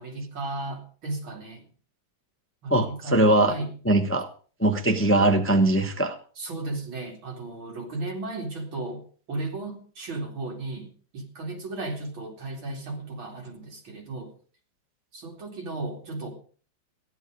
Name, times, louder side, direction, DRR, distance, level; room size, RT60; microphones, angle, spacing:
voice 1, 0.0-1.6 2.6-3.8 6.4-14.3 15.1-16.3, right 2 dB, 85° right, 2 dB, 3.6 m, -35 dB
voice 2, 2.7-3.5 3.9-4.3 4.6-6.1, right 1 dB, 10° left, 7 dB, 0.7 m, -21 dB
14.5 x 11.0 x 5.1 m, 0.42 s
omnidirectional pair, 2.1 m